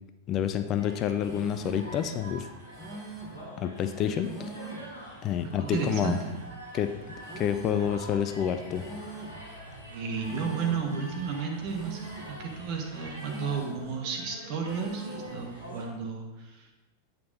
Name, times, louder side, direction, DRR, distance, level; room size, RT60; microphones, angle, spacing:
voice 1, 0.3-2.5 3.6-4.5 5.2-6.2 6.7-6.9 7.4-8.8, left 9 dB, 35° left, 9 dB, 0.4 m, -28 dB
sound 1, 0.8-15.9, right 1 dB, 80° right, 1.7 m, -45 dB
sound 2, 1.2-1.9 2.7-3.4 4.2-4.9 5.7-6.4 7.2-7.9 8.7-9.4 10.2-10.9 11.7-12.4 13.2-13.9 14.7-15.4, right 2 dB, ahead, 1.6 m, -42 dB
voice 2, 5.4-6.3 9.9-16.7, right 6 dB, 45° right, 2 dB, 1.2 m, -33 dB
8.4 x 4.2 x 3.9 m, 1.1 s
figure-of-eight pair, 90°, 0 cm